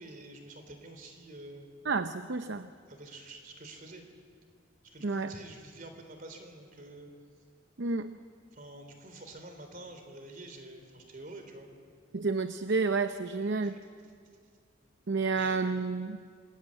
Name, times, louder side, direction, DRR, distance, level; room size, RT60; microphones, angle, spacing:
voice 1, 0.0-1.7 2.9-4.0 4.8-7.1 8.5-11.7 13.4-13.9 15.4-15.8, right 2 dB, 40° right, 6 dB, 3.6 m, -48 dB
voice 2, 1.9-2.7 5.0-5.3 7.8-8.1 12.1-13.8 15.1-16.2, right 4 dB, 60° right, 9 dB, 0.7 m, -30 dB
27.0 x 21.0 x 8.8 m, 2.2 s
head